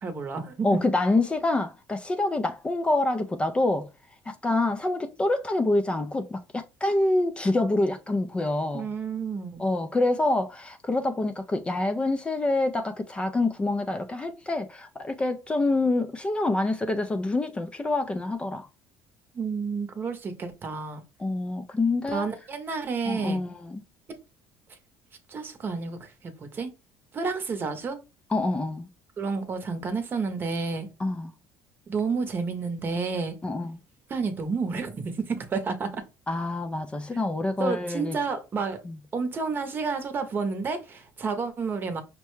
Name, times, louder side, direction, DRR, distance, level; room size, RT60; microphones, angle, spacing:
voice 1, 0.0-0.7 8.7-9.6 19.3-21.0 22.1-23.4 25.3-26.7 27.1-28.0 29.2-30.9 31.9-33.3 34.1-36.0 37.6-38.8 39.1-42.0, right 4 dB, 35° right, 0.8 m, -30 dB
voice 2, 0.6-3.9 4.3-8.9 9.6-18.7 21.2-22.3 23.1-23.8 28.3-28.9 31.0-31.3 33.4-33.8 36.3-38.2, left 2 dB, 15° left, 0.4 m, -26 dB
5.4 x 2.1 x 3.1 m
cardioid pair, 110°, 6 cm